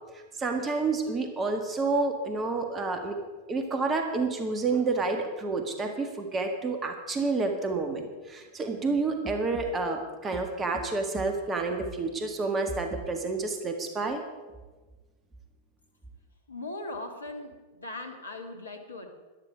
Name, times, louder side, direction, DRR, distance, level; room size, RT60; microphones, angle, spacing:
voice 1, 0.1-3.2 3.5-14.2, right 3 dB, 20° right, 5 dB, 1.7 m, -29 dB
voice 2, 16.5-19.1, left 2 dB, 80° left, 4 dB, 1.6 m, -39 dB
13.5 x 11.5 x 5.0 m, 1.3 s
figure-of-eight pair, 90°, 0 cm